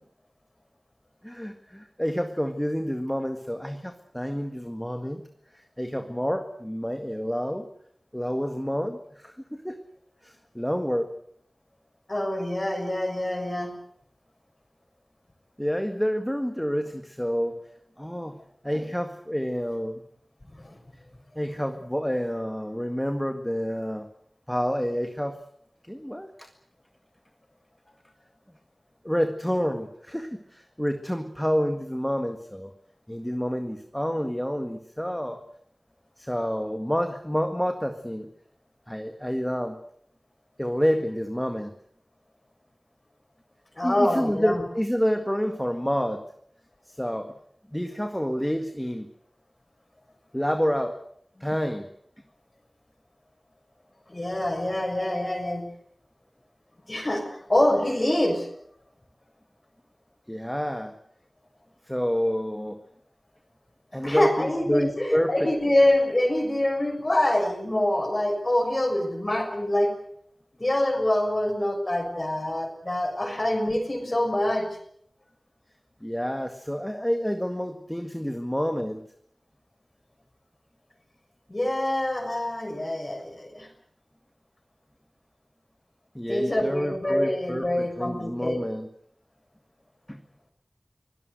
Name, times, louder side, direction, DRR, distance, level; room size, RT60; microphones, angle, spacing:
voice 1, 1.2-5.2 5.5-7.7 8.1-9.8 10.2-11.1 15.6-17.6 18.0-18.4 18.6-20.0 21.4-24.1 24.5-25.4 25.9-26.5 29.0-32.7 33.1-35.4 36.2-38.3 38.9-39.8 40.6-41.7 43.8-46.2 46.9-47.3 47.7-49.1 50.3-51.0 51.4-51.9 60.3-60.9 61.9-62.8 63.9-65.5 76.0-79.1 86.2-88.9 90.1-90.2, equal, 5° left, 6 dB, 1.8 m, -28 dB
voice 2, 12.1-13.7 18.7-18.8 20.6-20.8 43.8-44.6 54.1-55.6 56.9-58.5 64.0-69.9 70.5-74.7 81.5-83.7 86.3-88.6, left 1 dB, 35° left, 3 dB, 6.3 m, -25 dB
25.0 x 18.0 x 8.0 m, 0.66 s
wide cardioid pair, 60°, 0 cm